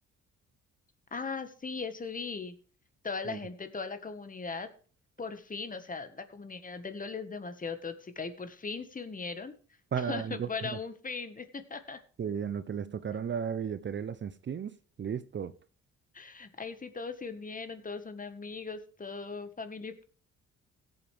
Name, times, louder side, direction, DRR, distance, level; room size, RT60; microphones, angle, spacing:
voice 1, 1.1-2.5 3.0-4.7 5.2-9.5 10.0-12.0 16.1-20.0, left 4 dB, 25° left, 1.6 m, -39 dB
voice 2, 9.9-10.5 12.2-15.5, right 7 dB, 40° right, 0.7 m, -34 dB
16.5 x 8.0 x 3.5 m
cardioid pair, 90°, 30 cm